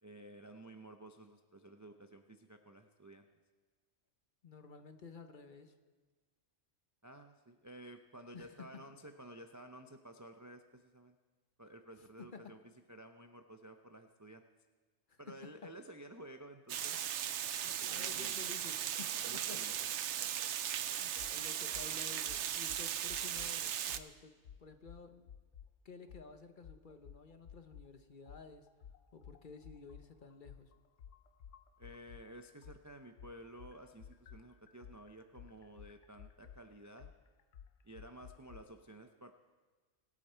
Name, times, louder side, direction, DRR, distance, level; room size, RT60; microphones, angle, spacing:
voice 1, 0.0-3.3 7.0-11.2 11.6-12.6 12.9-14.4 15.2-17.0 17.8-18.5 19.2-19.7 31.8-37.1 37.8-39.3, right 1 dB, 25° right, 6 dB, 0.4 m, -53 dB
voice 2, 4.4-5.7 8.3-8.7 12.3-12.5 15.1-15.2 17.6-19.6 21.0-25.3 25.8-28.7 29.1-30.7, left 4 dB, 45° left, 7 dB, 1.0 m, -53 dB
Water, 16.7-24.0, right 10 dB, 70° right, 0.9 m, -37 dB
sound 1, 21.2-21.3 21.7-21.9 22.3-23.5 23.9-24.1 24.4-25.7 26.1-26.3 26.6-27.9 28.3-32.3 32.6-38.6, left 8 dB, 85° left, 1.1 m, -54 dB
23.5 x 8.7 x 4.5 m, 1.3 s
omnidirectional pair, 1.2 m